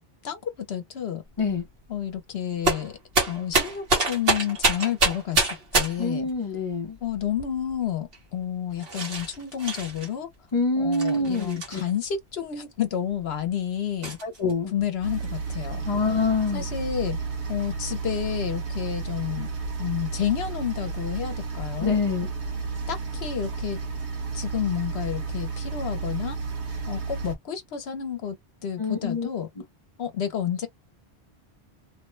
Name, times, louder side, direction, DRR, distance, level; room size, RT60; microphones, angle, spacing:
voice 1, 0.2-1.2 1.9-2.9 3.3-6.3 7.0-10.3 10.8-14.2 14.7-17.2 17.5-19.5 19.8-22.0 22.9-23.8 24.3-26.4 26.9-28.4 28.6-29.5 30.0-30.7, left 9 dB, 70° left, 1.0 m, -30 dB
sound 1, 1.4-1.7 2.6-6.2 7.0-7.7 8.1-8.2 8.7-10.1 10.9-12.1 12.8-12.9 13.3-13.4 14.0-14.5 14.9-15.8, right 3 dB, 60° right, 1.4 m, -27 dB
voice 2, 6.0-7.0 10.5-11.8 14.2-14.7 15.9-16.6 21.8-22.3 28.8-29.3, left 3 dB, 35° left, 0.8 m, -25 dB
sound 2, 15.0-27.4, right 4 dB, 85° right, 1.4 m, -32 dB
3.0 x 2.2 x 3.1 m
omnidirectional pair, 1.1 m